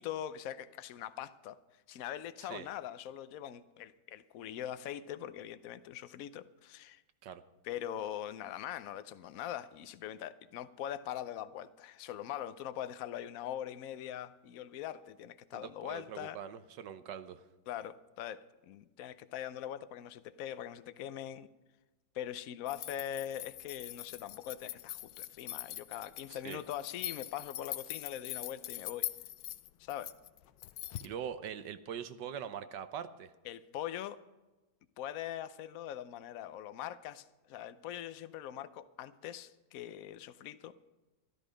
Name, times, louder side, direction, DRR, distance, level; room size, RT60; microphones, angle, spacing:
voice 1, 0.0-1.6 1.9-7.0 7.6-16.4 17.7-21.5 22.1-29.1 29.8-30.1 33.5-34.2 35.0-40.8, left 11 dB, 65° left, 14 dB, 1.0 m, -42 dB
voice 2, 15.5-17.4 26.3-26.6 31.0-33.3, right 8 dB, 75° right, 11 dB, 1.4 m, -43 dB
sound 1, 22.7-31.1, left 14 dB, 85° left, 1.3 m, -43 dB
13.0 x 13.0 x 5.1 m, 1.1 s
omnidirectional pair, 1.9 m